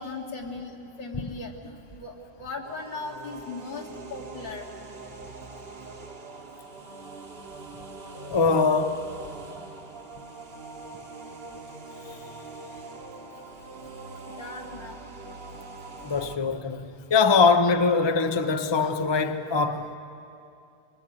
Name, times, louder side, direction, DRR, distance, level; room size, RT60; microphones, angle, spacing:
voice 1, 0.0-4.7 6.7-6.8 14.3-15.0, left 3 dB, 75° left, 3.3 m, -38 dB
sound 1, 2.6-16.4, right 3 dB, 35° right, 1.4 m, -43 dB
voice 2, 8.1-9.0 16.0-20.0, left 4 dB, 30° left, 0.5 m, -22 dB
25.0 x 23.5 x 8.9 m
omnidirectional pair, 2.0 m